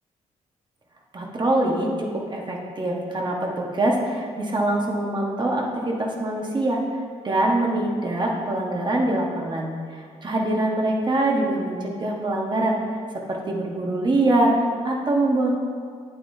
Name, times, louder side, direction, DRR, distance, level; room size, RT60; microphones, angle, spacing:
voice 1, 1.1-6.8 7.2-9.7 10.2-12.8 13.3-14.5 14.8-15.5, right 1 dB, 35° right, -1 dB, 1.4 m, -23 dB
8.7 x 8.4 x 2.7 m, 2.1 s
cardioid pair, 90°, 14 cm